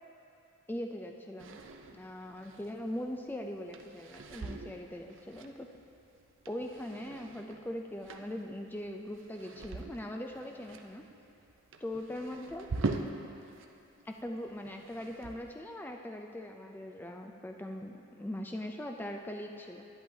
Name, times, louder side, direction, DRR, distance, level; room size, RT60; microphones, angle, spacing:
voice 1, 0.7-1.6 1.9-5.7 6.5-11.0 11.8-12.7 14.1-19.8, left 1 dB, 10° left, 3 dB, 0.3 m, -41 dB
sound 1, 1.4-13.7 14.0-15.6, right 3 dB, 60° right, 0.5 m, -43 dB
11.0 x 10.5 x 2.7 m, 2.6 s
head